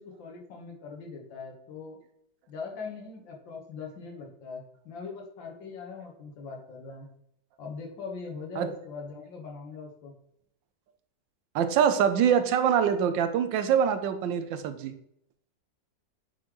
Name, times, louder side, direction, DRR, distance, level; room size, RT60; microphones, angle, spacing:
voice 1, 0.0-2.0 2.5-7.1 7.6-10.1, left 5 dB, 85° left, 0 dB, 2.0 m, -41 dB
voice 2, 11.5-14.9, right 8 dB, 85° right, 9 dB, 1.4 m, -24 dB
8.3 x 3.9 x 3.0 m, 0.74 s
omnidirectional pair, 2.0 m